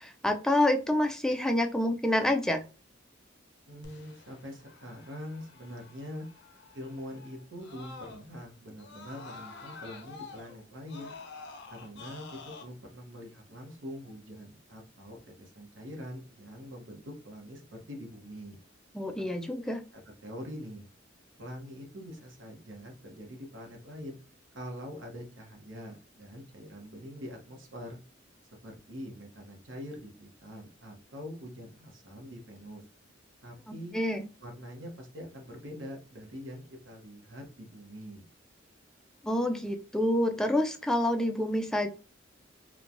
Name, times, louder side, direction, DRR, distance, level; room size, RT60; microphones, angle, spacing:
voice 1, 0.0-2.6 18.9-19.8 33.7-34.2 39.2-41.9, left 1 dB, 5° left, 5 dB, 0.3 m, -27 dB
voice 2, 3.7-6.3 6.7-11.1 11.7-18.6 19.9-20.9 21.4-24.2 24.5-28.0 28.6-32.8 33.4-33.9 34.4-38.3, equal, 70° right, 2 dB, 0.9 m, -44 dB
Screaming, 3.8-8.4 8.8-12.6, left 4 dB, 65° left, 0.5 m, -48 dB
3.0 x 2.1 x 2.5 m, 0.33 s
head